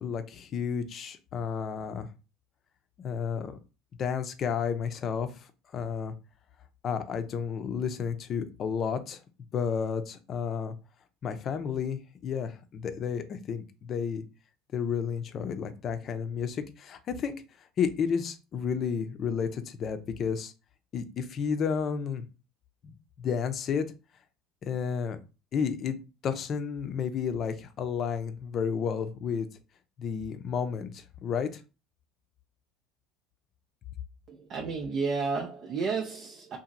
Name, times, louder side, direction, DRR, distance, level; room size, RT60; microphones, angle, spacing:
voice 1, 0.0-2.1 3.0-3.6 4.0-6.1 6.8-9.2 9.5-10.7 11.2-14.2 14.7-17.4 17.8-20.5 20.9-22.3 22.8-23.8 24.6-25.2 25.5-26.0 26.2-29.5 30.0-31.6, left 6 dB, 45° left, 0.5 m, -31 dB
voice 2, 34.3-36.6, right 4 dB, 50° right, 0.5 m, -32 dB
2.8 x 2.5 x 2.5 m
hypercardioid pair, 80°, 0 cm